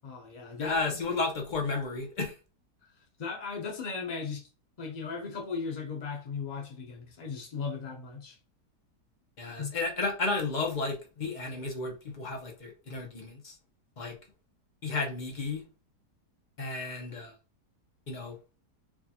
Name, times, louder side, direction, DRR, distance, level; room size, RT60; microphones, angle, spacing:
voice 1, 0.0-1.1 3.2-4.5 4.8-8.4 9.6-9.7, left 5 dB, 70° left, 0.4 m, -37 dB
voice 2, 0.6-2.3 9.4-13.5 14.0-14.2 14.8-15.6 16.6-17.3 18.1-18.4, left 3 dB, 40° left, 0.7 m, -33 dB
4.6 x 2.4 x 2.8 m
omnidirectional pair, 1.8 m